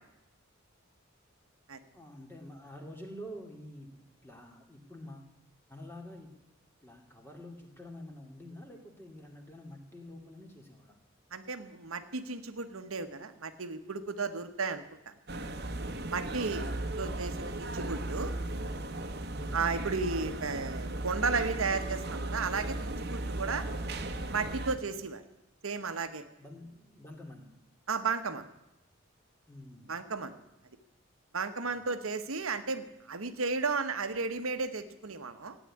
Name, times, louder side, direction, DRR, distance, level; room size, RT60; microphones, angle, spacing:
voice 1, 1.9-5.3 5.7-6.4 6.8-11.0 19.3-19.7 26.4-27.6 29.5-30.0 31.7-31.9, left 1 dB, 10° left, 2 dB, 2.3 m, -48 dB
voice 2, 11.3-15.1 16.1-16.6 17.0-18.3 19.5-23.7 24.3-25.2 25.6-26.2 27.9-28.4 29.9-30.4 31.3-35.6, right 4 dB, 80° right, 8 dB, 1.1 m, -34 dB
sound 1, 15.3-24.8, right 2 dB, 50° right, 1.2 m, -36 dB
15.5 x 9.1 x 9.7 m, 0.89 s
head